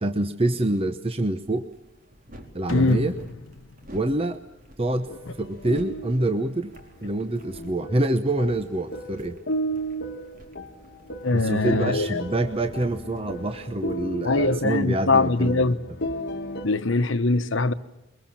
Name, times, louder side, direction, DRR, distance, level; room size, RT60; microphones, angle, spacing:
voice 1, 0.0-1.7 2.5-3.1 3.9-4.4 4.8-5.1 5.4-6.7 7.0-9.4 11.3-15.6, right 1 dB, 30° right, 0.9 m, -26 dB
sound 1, 1.4-14.0, equal, 45° right, 4.3 m, -50 dB
sound 2, 2.7-5.2, left 3 dB, 90° left, 1.0 m, -36 dB
voice 2, 2.7-3.1 5.1-5.2 11.2-12.2 14.2-15.8 16.6-17.7, left 3 dB, 70° left, 1.2 m, -22 dB
sound 3, 4.9-16.7, right 1 dB, 55° left, 1.6 m, -35 dB
23.0 x 22.5 x 7.3 m
head